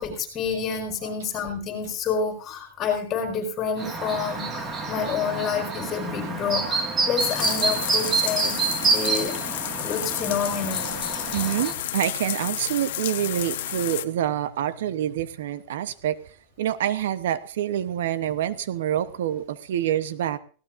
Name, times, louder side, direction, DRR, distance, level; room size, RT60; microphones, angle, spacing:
voice 1, 0.0-9.4 9.8-10.9, left 6 dB, 25° left, 5.3 m, -28 dB
Chirp tweet, 3.8-11.7, right 4 dB, 20° right, 1.9 m, -28 dB
sound 1, 7.2-14.1, left 14 dB, 70° left, 0.9 m, -31 dB
voice 2, 11.3-16.2 16.6-20.4, right 11 dB, 75° right, 0.8 m, -27 dB
19.0 x 16.5 x 2.6 m
supercardioid pair, 150°, 0 cm